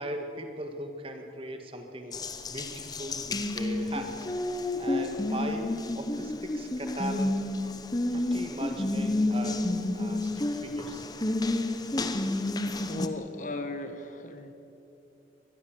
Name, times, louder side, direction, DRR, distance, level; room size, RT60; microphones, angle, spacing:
voice 1, 0.0-4.2 4.8-7.5 8.1-9.7 9.9-11.1, right 1 dB, 30° right, 5 dB, 2.0 m, -39 dB
Water tap faucet, 2.1-13.1, left 2 dB, 20° left, 1.0 m, -30 dB
voice 2, 12.9-14.5, left 2 dB, 45° left, 8 dB, 1.4 m, -36 dB
24.5 x 19.5 x 7.7 m, 2.9 s
head